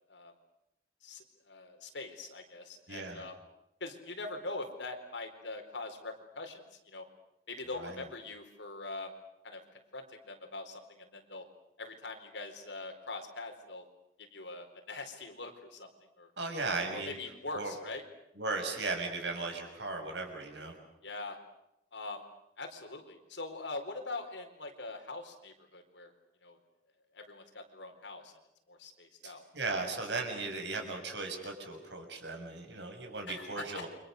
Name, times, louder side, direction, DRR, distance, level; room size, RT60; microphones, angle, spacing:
voice 1, 1.0-3.3 3.8-7.0 7.5-9.1 9.4-9.6 9.9-11.4 11.8-13.8 14.3-15.9 16.2-16.3 16.9-18.0 21.0-21.4 21.9-22.2 22.6-26.1 26.4-26.6 27.1-28.4 28.7-29.4 33.3-33.9, left 3 dB, 90° left, 4 dB, 4.5 m, -43 dB
voice 2, 2.9-3.2 7.8-8.0 16.4-17.2 17.5-17.7 18.4-20.7 29.2-33.9, right 3 dB, 75° right, 3 dB, 6.7 m, -37 dB
29.5 x 25.5 x 6.8 m, 0.83 s
head